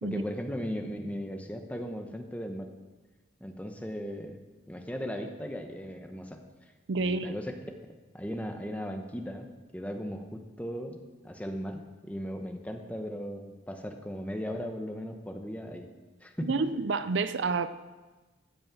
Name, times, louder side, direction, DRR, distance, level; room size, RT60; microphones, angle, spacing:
voice 1, 0.0-2.7 3.4-4.4 4.7-7.5 8.1-9.5 9.7-15.9 16.2-16.6, equal, 5° left, 4 dB, 1.0 m, -37 dB
voice 2, 6.9-7.4 16.4-17.7, right 4 dB, 65° right, 12 dB, 0.5 m, -29 dB
13.5 x 6.3 x 7.3 m, 1.2 s
head